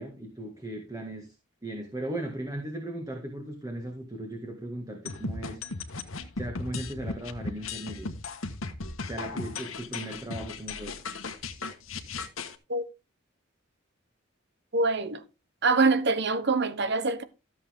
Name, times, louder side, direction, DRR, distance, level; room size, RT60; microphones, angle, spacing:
voice 1, 0.0-1.4 1.6-5.6 6.4-8.1 9.1-10.9, right 1 dB, 20° right, 1.9 m, -37 dB
sound 1, 5.1-12.6, left 3 dB, 90° left, 1.4 m, -36 dB
voice 2, 14.7-15.2 15.6-17.2, right 3 dB, 55° right, 1.2 m, -24 dB
14.0 x 7.5 x 3.7 m
head